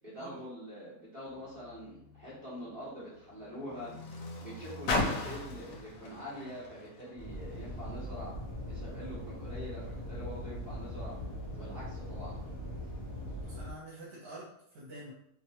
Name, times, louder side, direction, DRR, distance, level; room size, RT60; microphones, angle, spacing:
voice 1, 0.0-3.9 4.4-8.3 8.7-11.1 11.6-12.4, equal, 35° right, -10 dB, 0.9 m, -44 dB
Car, 1.3-7.9 8.7-8.8, left 2 dB, 75° left, 1.1 m, -39 dB
sound 1, 7.1-13.7, left 1 dB, 50° left, 1.0 m, -41 dB
voice 2, 13.4-15.1, right 1 dB, 70° right, -6 dB, 1.3 m, -47 dB
2.9 x 2.2 x 2.8 m, 0.75 s
omnidirectional pair, 1.8 m